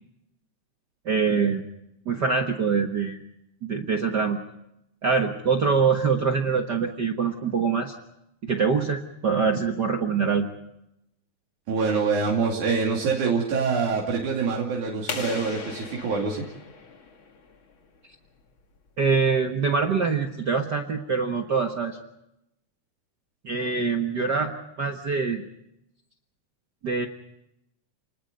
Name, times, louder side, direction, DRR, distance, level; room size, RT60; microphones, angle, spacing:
voice 1, 1.0-1.6 2.0-3.2 3.6-4.4 5.0-7.9 8.4-10.5 19.0-22.0 23.4-24.5 24.8-25.4 26.8-27.1, right 5 dB, 45° right, 3 dB, 1.6 m, -24 dB
voice 2, 11.7-16.4, right 5 dB, 85° right, -2 dB, 4.1 m, -25 dB
sound 1, 15.1-17.7, left 4 dB, 45° left, 2.8 m, -37 dB
30.0 x 20.0 x 5.3 m, 0.83 s
omnidirectional pair, 3.4 m